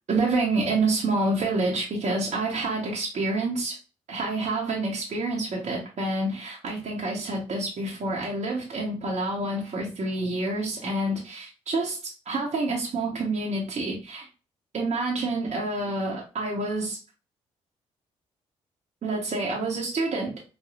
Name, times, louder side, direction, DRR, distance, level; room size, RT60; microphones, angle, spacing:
voice 1, 0.1-3.8 4.1-14.3 14.7-17.0 19.0-20.4, right 2 dB, 45° right, -3 dB, 0.9 m, -28 dB
5.0 x 2.3 x 2.4 m, 0.34 s
hypercardioid pair, 40°, 16 cm